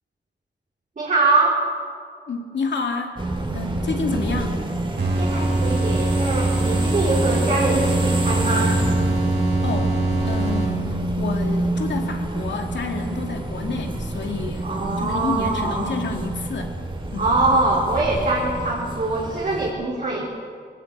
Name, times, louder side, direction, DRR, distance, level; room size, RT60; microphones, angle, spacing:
voice 1, 1.0-1.7 4.1-4.3 5.2-8.8 14.6-15.9 17.2-20.3, right 2 dB, 45° right, -4 dB, 3.4 m, -23 dB
voice 2, 2.3-3.2 3.5-4.5 9.6-14.7 15.0-16.8 17.1-17.4, left 4 dB, 80° left, 3 dB, 2.5 m, -29 dB
sound 1, 3.2-19.7, right 2 dB, 25° right, 2.5 m, -27 dB
sound 2, 5.0-11.1, right 2 dB, 65° right, 5.2 m, -23 dB
20.5 x 17.5 x 8.2 m, 2.2 s
wide cardioid pair, 130°, 18 cm